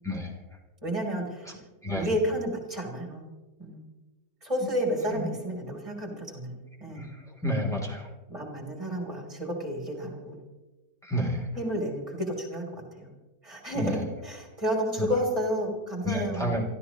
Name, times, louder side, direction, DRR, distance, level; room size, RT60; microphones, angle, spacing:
voice 1, 0.8-1.5 1.9-3.3 3.6-3.8 4.4-7.1 8.3-10.4 11.5-13.1 13.4-16.5, equal, 20° right, 0 dB, 3.6 m, -31 dB
voice 2, 7.4-8.0 11.0-11.4 13.7-13.9 15.0-15.1 16.0-16.6, equal, ahead, -2 dB, 3.2 m, -29 dB
27.5 x 14.0 x 3.1 m, 1.2 s
omnidirectional pair, 1.7 m